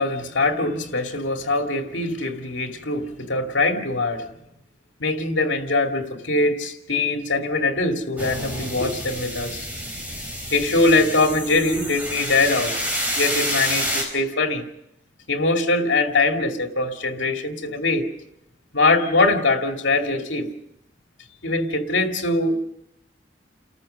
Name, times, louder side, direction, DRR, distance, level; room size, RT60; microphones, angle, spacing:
voice 1, 0.0-4.3 5.0-9.6 10.5-12.7 13.2-14.6 15.3-18.1 18.7-20.5 21.4-22.6, left 2 dB, 85° left, 2.4 m, -22 dB
sound 1, 8.2-14.0, equal, 10° right, 4.5 m, -28 dB
29.5 x 14.0 x 6.6 m
head